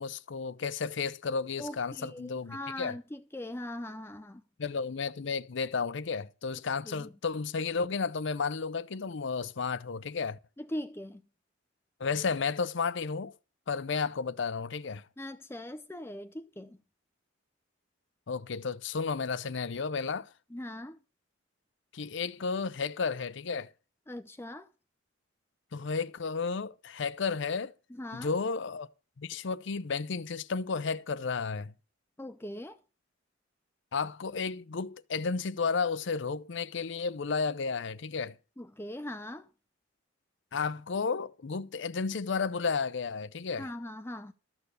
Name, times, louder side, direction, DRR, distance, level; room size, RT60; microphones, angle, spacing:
voice 1, 0.0-2.9 4.6-10.4 12.0-13.3 13.7-15.0 18.3-20.3 21.9-23.7 25.7-27.7 28.1-28.9 29.2-31.7 33.9-38.4 40.5-43.7, left 5 dB, 65° left, 0.6 m, -32 dB
voice 2, 1.6-4.4 6.8-7.1 10.6-11.2 15.2-16.8 20.5-21.0 24.1-24.7 27.9-28.3 32.2-32.8 38.6-39.5 43.6-44.3, left 1 dB, 10° left, 0.5 m, -40 dB
13.0 x 6.9 x 6.6 m
head